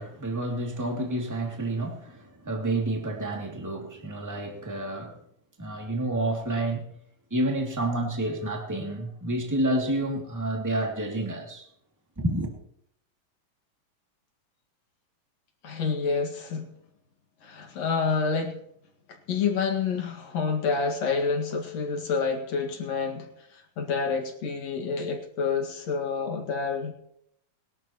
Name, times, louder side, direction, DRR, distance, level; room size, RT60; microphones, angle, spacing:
voice 1, 0.0-5.1 5.6-6.8 7.3-11.7 12.2-12.5, right 1 dB, 5° right, 1.9 m, -29 dB
voice 2, 15.6-16.7 17.4-18.6 19.1-26.9, left 5 dB, 55° left, 2.9 m, -28 dB
21.0 x 12.5 x 3.0 m
omnidirectional pair, 4.0 m